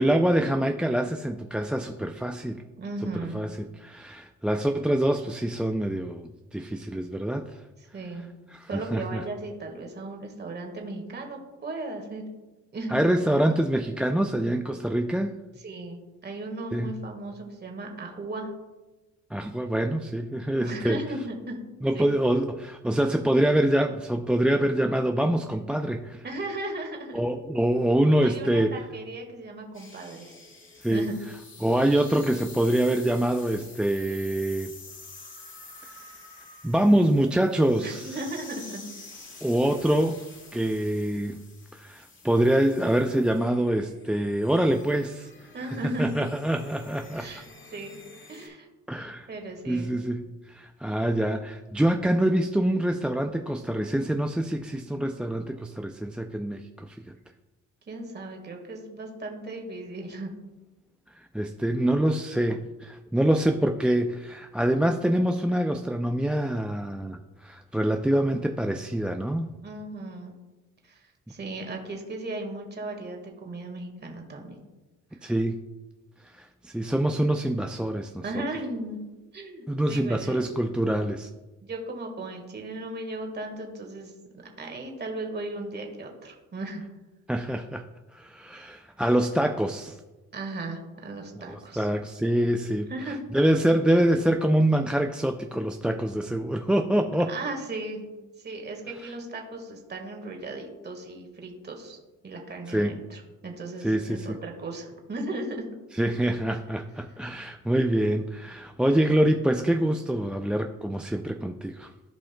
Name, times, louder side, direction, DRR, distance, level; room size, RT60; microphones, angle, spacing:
voice 1, 0.0-2.6 3.3-7.6 8.5-9.2 12.9-15.4 16.7-17.0 19.3-21.0 21.8-26.2 27.1-28.8 30.8-31.1 31.6-34.7 36.6-38.2 39.4-40.2 40.5-41.4 41.7-45.3 45.6-47.3 48.9-49.3 49.7-57.1 61.1-69.5 75.2-75.6 76.2-78.4 79.7-81.3 87.3-87.8 88.1-90.0 91.4-97.3 99.0-99.1 102.7-102.9 103.8-104.4 105.9-111.9, right 1 dB, 5° right, 6 dB, 0.3 m, -25 dB
voice 2, 2.8-3.4 7.9-8.3 8.7-12.2 12.7-13.0 15.6-18.5 20.6-21.6 21.9-22.0 26.2-27.3 28.2-30.3 30.9-31.1 37.8-38.8 45.5-46.1 47.2-47.5 47.7-47.9 48.3-48.7 48.9-49.9 57.9-60.3 69.6-70.3 70.8-71.0 71.3-74.6 78.2-79.0 79.3-80.4 81.6-86.9 90.3-91.9 92.9-93.2 97.3-98.1 98.4-102.0 102.2-105.6, right 2 dB, 35° right, 2 dB, 1.6 m, -36 dB
sound 1, 29.7-48.5, left 3 dB, 40° left, 2.1 m, -48 dB
15.0 x 5.1 x 2.2 m, 1.1 s
cardioid pair, 90°, 30 cm